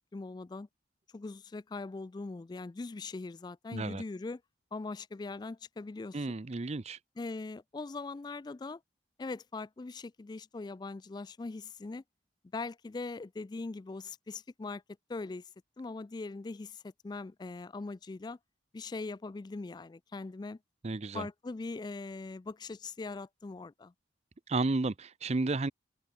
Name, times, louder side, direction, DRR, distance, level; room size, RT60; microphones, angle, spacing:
voice 1, 0.1-0.7 1.1-4.4 4.7-6.3 7.2-8.8 9.2-12.0 12.5-14.8 15.1-15.5 15.8-18.4 18.7-20.6 21.1-23.9, left 3 dB, 25° left, 0.3 m, -41 dB
voice 2, 3.7-4.0 6.1-7.0 20.8-21.3 24.5-25.7, right 3 dB, 35° right, 0.6 m, -32 dB
open air
head